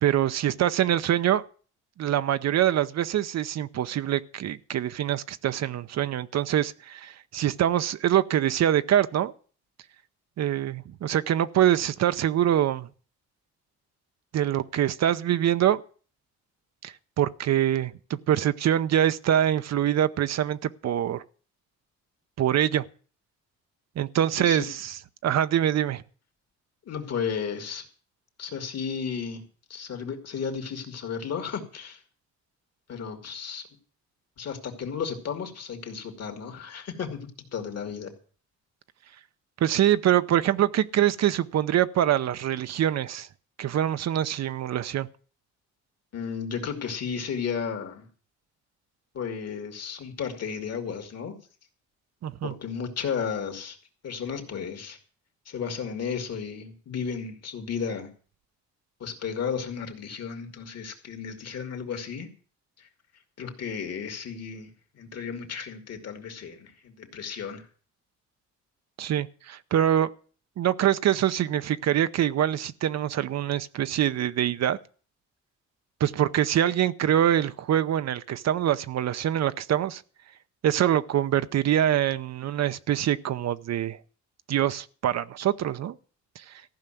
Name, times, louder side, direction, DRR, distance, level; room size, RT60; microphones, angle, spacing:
voice 1, 0.0-1.4 2.0-9.3 10.4-12.9 14.3-15.8 16.8-21.2 22.4-22.9 24.0-25.0 25.2-26.0 39.6-43.3 43.6-45.1 52.2-52.5 69.0-70.1 70.6-74.8 76.0-80.0 80.6-84.0 84.5-86.0 86.4-86.5, right 11 dB, 60° right, 0.7 m, -24 dB
voice 2, 24.4-24.7 26.8-27.8 28.4-29.4 29.7-32.0 32.9-33.7 34.4-38.1 46.1-48.1 49.1-51.4 52.4-53.8 54.0-55.0 55.5-58.1 59.0-62.3 62.8-62.9 63.4-67.7, left 6 dB, 55° left, 2.7 m, -34 dB
14.5 x 5.7 x 9.2 m
cardioid pair, 90°, 30 cm